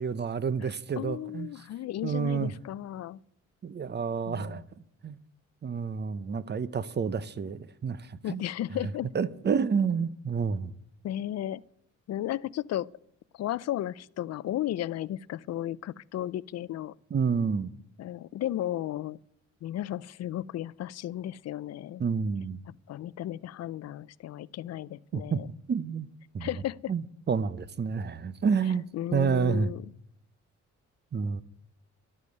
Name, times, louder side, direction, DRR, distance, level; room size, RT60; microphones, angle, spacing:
voice 1, 0.0-1.5 2.0-2.5 3.6-4.6 5.0-5.2 5.6-8.4 8.8-10.7 17.1-17.7 22.0-22.6 25.1-25.4 25.7-26.1 26.3-26.5 26.9-28.9 29.1-29.7 31.1-31.4, right 6 dB, 35° right, 0.8 m, -29 dB
voice 2, 0.6-3.2 4.3-4.6 8.2-9.1 11.0-11.6 12.1-12.9 13.3-16.9 18.0-19.2 19.6-22.0 22.7-25.5 26.4-26.9 28.9-29.8, left 12 dB, 60° left, 0.5 m, -34 dB
12.0 x 8.3 x 9.4 m
cardioid pair, 90°, 30 cm